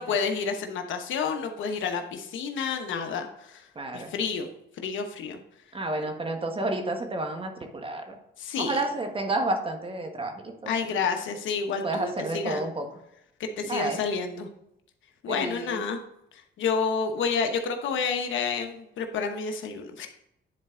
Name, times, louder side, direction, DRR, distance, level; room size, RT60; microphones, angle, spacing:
voice 1, 0.0-3.6 3.9-4.5 4.8-5.4 8.4-8.8 10.7-12.7 13.4-14.5 15.2-16.0 16.6-20.1, left 5 dB, 75° left, 5 dB, 1.1 m, -29 dB
voice 2, 3.7-4.1 5.7-8.2 8.6-10.7 11.8-12.9 13.7-14.0 15.3-15.8, right 2 dB, 25° right, 5 dB, 1.4 m, -30 dB
10.0 x 4.3 x 3.7 m, 0.82 s
cardioid pair, 90°, 20 cm